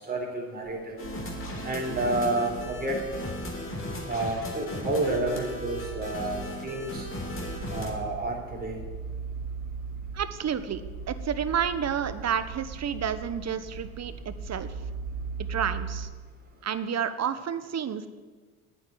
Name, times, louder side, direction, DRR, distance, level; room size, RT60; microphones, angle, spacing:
voice 1, 0.1-1.0 1.6-3.0 4.1-7.1 7.7-8.8, right 2 dB, 25° right, 0 dB, 3.8 m, -30 dB
sound 1, 1.0-7.9, left 1 dB, 35° left, 3.5 m, -36 dB
sound 2, 1.0-16.0, right 5 dB, 80° right, 3.0 m, -39 dB
voice 2, 10.1-14.7 15.5-16.1 16.6-18.1, right 8 dB, 45° right, 13 dB, 1.1 m, -30 dB
9.1 x 8.6 x 9.7 m, 1.4 s
supercardioid pair, 70°, 38 cm